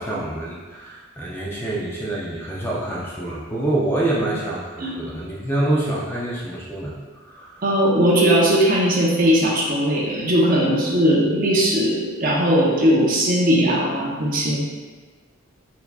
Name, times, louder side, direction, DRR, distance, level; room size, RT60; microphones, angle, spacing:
voice 1, 0.0-7.7, right 1 dB, 10° left, -5 dB, 0.5 m, -26 dB
voice 2, 7.6-14.6, equal, 40° right, -4 dB, 0.8 m, -19 dB
4.5 x 4.0 x 2.3 m, 1.4 s
head